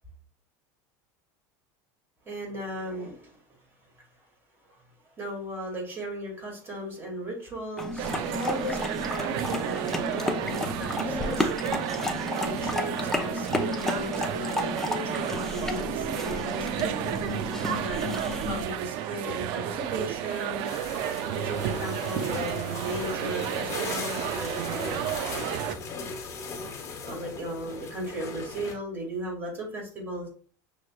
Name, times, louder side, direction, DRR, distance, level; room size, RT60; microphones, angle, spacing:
voice 1, 2.3-3.4 5.2-11.8 12.3-17.0 17.8-18.1 18.5-20.7 21.3-25.2 27.1-30.3, right 1 dB, 20° right, -2 dB, 2.3 m, -36 dB
sound 1, 7.8-18.6, left 2 dB, 5° left, 0.5 m, -32 dB
sound 2, 8.0-25.8, right 11 dB, 55° right, 0.4 m, -32 dB
sound 3, 20.6-28.7, left 4 dB, 30° left, 1.0 m, -38 dB
6.1 x 3.2 x 2.3 m, 0.43 s
supercardioid pair, 140°, 10 cm